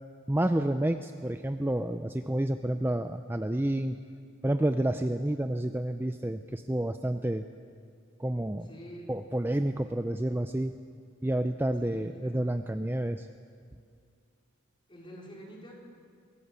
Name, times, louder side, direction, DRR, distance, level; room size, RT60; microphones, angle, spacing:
voice 1, 0.3-4.0 4.4-7.4 8.2-8.7 9.1-10.7 11.2-13.3, right 1 dB, 10° right, 8 dB, 0.5 m, -29 dB
voice 2, 8.4-9.1 11.8-12.4 14.9-15.7, equal, 25° left, -2 dB, 4.3 m, -47 dB
23.5 x 17.0 x 8.2 m, 2.2 s
head